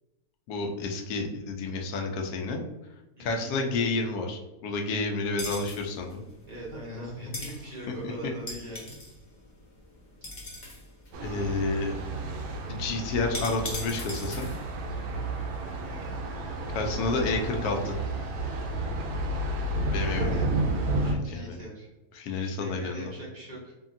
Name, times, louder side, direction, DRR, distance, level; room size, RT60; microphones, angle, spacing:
voice 1, 0.5-2.6 3.2-6.2 8.0-8.1 11.2-11.9 12.7-14.5 16.7-17.9 19.9-20.4 21.0-21.6 22.1-23.1, left 3 dB, 70° left, 3 dB, 1.0 m, -30 dB
voice 2, 3.2-3.5 6.5-8.9 15.6-16.0 19.9-20.6 21.0-21.9 22.6-23.7, right 1 dB, 35° right, -5 dB, 0.7 m, -41 dB
sound 1, 5.4-16.2, left 1 dB, 55° left, 0.5 m, -42 dB
Thunder, 11.1-21.1, right 2 dB, 75° right, 1.0 m, -31 dB
2.7 x 2.7 x 2.5 m, 1.0 s
omnidirectional pair, 1.7 m